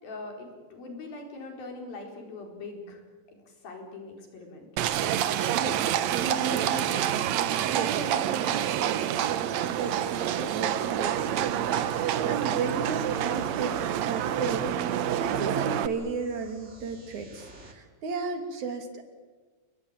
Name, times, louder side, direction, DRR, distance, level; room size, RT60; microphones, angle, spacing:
voice 1, 0.0-3.0 3.3-4.7, left 3 dB, 75° left, 2 dB, 6.3 m, -42 dB
Livestock farm animals working animals, 4.8-15.9, right 10 dB, 70° right, 1.7 m, -27 dB
voice 2, 6.2-9.2 9.7-13.8 14.1-19.1, right 4 dB, 55° right, 6 dB, 4.0 m, -35 dB
sound 1, 12.7-17.7, right 2 dB, 20° right, 2.7 m, -52 dB
29.5 x 20.5 x 9.0 m, 1.3 s
omnidirectional pair, 4.2 m